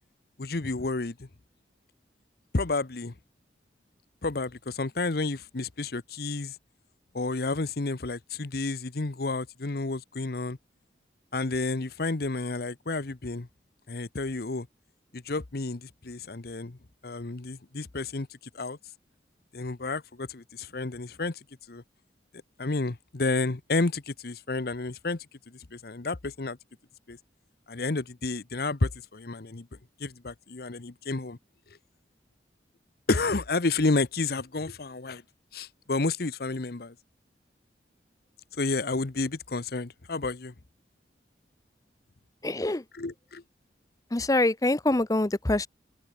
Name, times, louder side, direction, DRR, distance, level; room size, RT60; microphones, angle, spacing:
voice 1, 0.4-1.3 2.5-3.1 4.2-6.5 7.1-10.6 11.3-13.5 13.9-14.7 15.1-16.8 17.0-18.3 18.5-18.8 19.5-21.4 21.7-21.8 22.6-25.2 25.7-26.6 27.1-27.2 27.7-29.7 30.0-31.4 33.1-35.2 35.5-36.9 38.6-40.5 42.9-43.4, left 3 dB, 60° left, 0.9 m, -30 dB
voice 2, 42.4-42.8 44.1-45.7, left 2 dB, 20° left, 0.7 m, -25 dB
open air
head